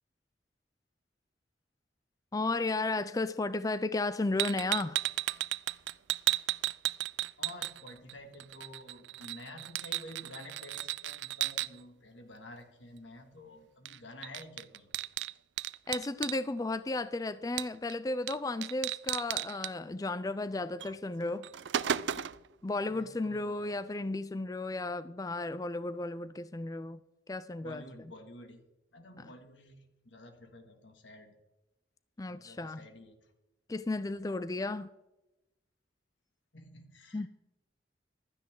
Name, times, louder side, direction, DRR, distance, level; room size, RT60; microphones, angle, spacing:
voice 1, 2.3-5.0 15.9-21.5 22.6-27.0 27.3-27.8 29.2-29.3 32.2-32.8 33.7-34.9 37.1-37.3, left 2 dB, 20° left, 0.4 m, -34 dB
sound 1, 4.4-8.1 8.4-11.7 13.8-14.0 14.2-16.4 17.6-17.9 18.3-18.4 18.6-19.7 20.8-20.9 21.3-22.5, right 13 dB, 75° right, 0.4 m, -34 dB
voice 2, 7.4-14.9 22.9-23.8 27.6-28.6 28.9-31.3 32.3-33.1 36.5-37.3, left 1 dB, 90° left, 2.3 m, -50 dB
15.5 x 12.5 x 3.8 m
head